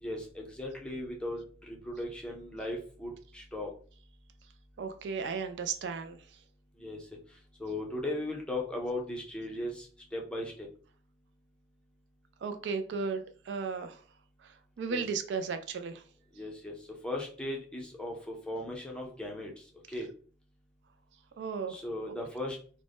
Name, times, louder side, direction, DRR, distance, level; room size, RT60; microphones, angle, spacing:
voice 1, 0.0-3.7 6.8-7.0 7.6-10.7 14.9-15.0 16.4-16.7 17.0-19.5 19.9-20.1 21.7-22.6, left 1 dB, 5° left, -1 dB, 0.5 m, -37 dB
voice 2, 4.8-6.2 12.4-14.0 14.8-16.0 21.4-21.8, right 5 dB, 70° right, 8 dB, 0.3 m, -35 dB
2.5 x 2.1 x 3.3 m, 0.43 s
head